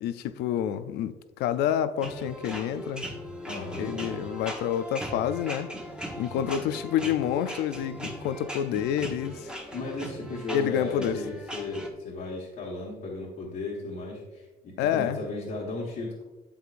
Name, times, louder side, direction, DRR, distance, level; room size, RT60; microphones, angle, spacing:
voice 1, 0.0-3.2 3.8-5.7 6.2-9.5 10.5-11.2 14.8-15.2, left 9 dB, 80° left, 12 dB, 0.5 m, -28 dB
sound 1, 2.0-11.9, equal, 5° right, 1.1 m, -39 dB
voice 2, 3.5-3.9 6.3-6.7 9.7-16.2, left 2 dB, 55° left, -5 dB, 1.5 m, -36 dB
8.2 x 7.7 x 2.5 m, 1.1 s
cardioid pair, 110°, 17 cm